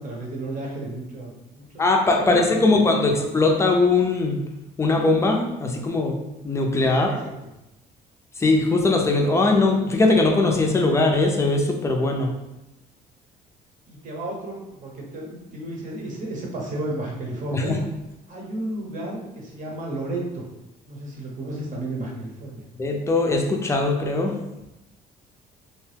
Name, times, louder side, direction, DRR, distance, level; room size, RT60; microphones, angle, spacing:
voice 1, 0.0-1.8 2.3-3.2 7.0-7.3 13.9-17.7 18.3-20.4 20.9-22.6, right 1 dB, 50° right, -2 dB, 0.9 m, -33 dB
voice 2, 1.8-4.4 4.8-7.3 8.4-12.3 17.5-17.8 22.8-24.3, left 3 dB, 15° left, 1 dB, 0.5 m, -20 dB
2.8 x 2.2 x 3.3 m, 0.95 s
cardioid pair, 110°, 17 cm